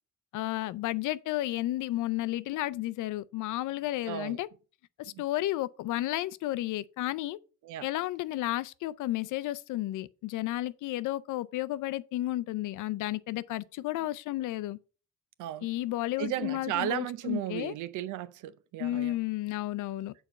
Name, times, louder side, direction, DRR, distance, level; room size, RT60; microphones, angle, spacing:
voice 1, 0.3-4.5 5.0-7.4 7.8-14.8 15.6-17.7 18.8-20.1, left 15 dB, 80° left, 0.5 m, -32 dB
voice 2, 4.1-4.4 5.1-5.2 7.6-7.9 15.4-15.7 16.2-19.2, right 12 dB, 85° right, 0.6 m, -35 dB
6.9 x 4.3 x 5.4 m
cardioid pair, 90°, 30 cm